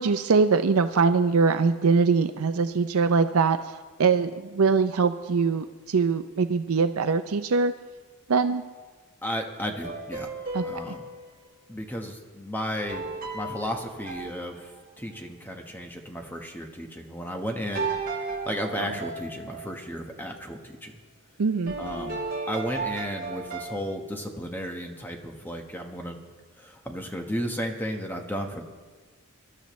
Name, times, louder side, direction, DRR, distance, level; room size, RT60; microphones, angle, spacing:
voice 1, 0.0-7.7 8.3-8.6 10.5-10.7 18.8-19.0 21.4-21.7, right 4 dB, 75° right, 9 dB, 0.5 m, -23 dB
voice 2, 9.2-10.3 10.6-11.0 11.7-13.1 13.3-14.7 15.0-17.9 18.4-20.9 21.8-22.2 22.5-26.2 26.6-28.6, equal, 10° left, 2 dB, 1.2 m, -34 dB
sound 1, 9.7-11.3 12.9-15.1 17.7-19.8 21.7-23.6, right 3 dB, 40° right, 3.3 m, -34 dB
24.5 x 12.5 x 3.2 m, 1.4 s
head